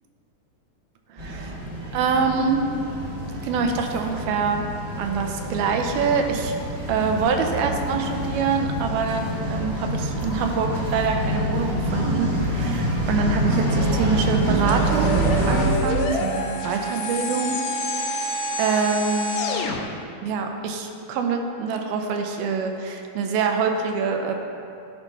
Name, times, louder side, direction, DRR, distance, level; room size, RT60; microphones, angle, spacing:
voice 1, 1.1-1.5 1.9-2.6 3.4-4.7 5.0-6.5 6.9-17.6 17.9-18.3 18.6-19.4 20.2-24.3, right 5 dB, 80° right, 4 dB, 2.6 m, -25 dB
sound 1, 1.2-15.7, right 1 dB, 25° right, 1.3 m, -26 dB
sound 2, 14.7-19.8, left 1 dB, 75° left, 1.6 m, -27 dB
12.5 x 5.9 x 5.6 m, 2.5 s
omnidirectional pair, 4.4 m